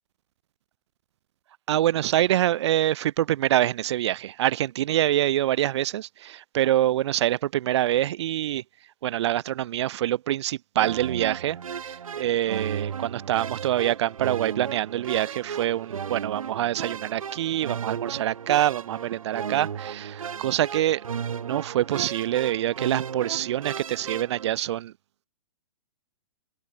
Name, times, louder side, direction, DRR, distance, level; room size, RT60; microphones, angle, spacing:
voice 1, 1.7-8.6 9.0-24.9, right 13 dB, 55° right, 1.8 m, -25 dB
sound 1, 10.8-24.5, right 7 dB, 85° right, 3.0 m, -35 dB
hypercardioid pair, 145°, 17 cm